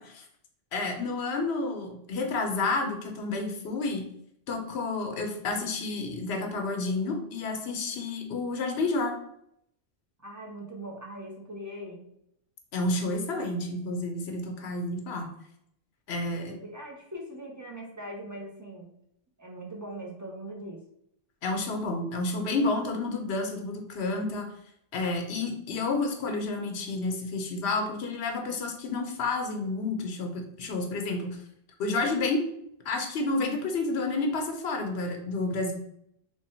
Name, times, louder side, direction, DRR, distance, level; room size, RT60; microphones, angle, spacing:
voice 1, 0.7-4.1 4.5-9.1 12.7-15.3 16.1-16.5 21.4-24.5 24.9-31.4 31.8-32.5 32.8-35.7, left 3 dB, 85° left, 3 dB, 0.9 m, -30 dB
voice 2, 10.2-12.0 16.3-18.9 19.4-20.8, right 1 dB, 20° right, -1 dB, 0.6 m, -41 dB
3.2 x 2.2 x 4.2 m, 0.73 s
omnidirectional pair, 1.1 m